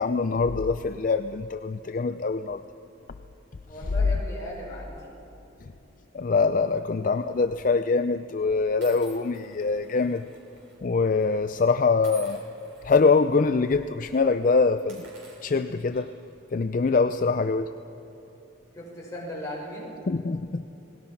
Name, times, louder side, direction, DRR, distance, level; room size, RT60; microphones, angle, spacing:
voice 1, 0.0-2.6 3.8-3.9 5.6-5.7 6.1-10.2 10.8-12.4 12.8-15.1 15.4-16.1 16.5-17.7 20.1-20.7, left 4 dB, 45° left, 10 dB, 0.4 m, -24 dB
voice 2, 3.7-5.0 18.7-19.9, equal, 15° left, -5 dB, 5.9 m, -37 dB
sound 1, 7.1-7.4 8.2-8.3 8.8-10.8 11.0-11.2 12.0-13.2 13.6-13.8 14.1-14.2 14.7-16.3, right 4 dB, 85° right, 6.8 m, -51 dB
30.0 x 19.5 x 5.8 m, 3.0 s
head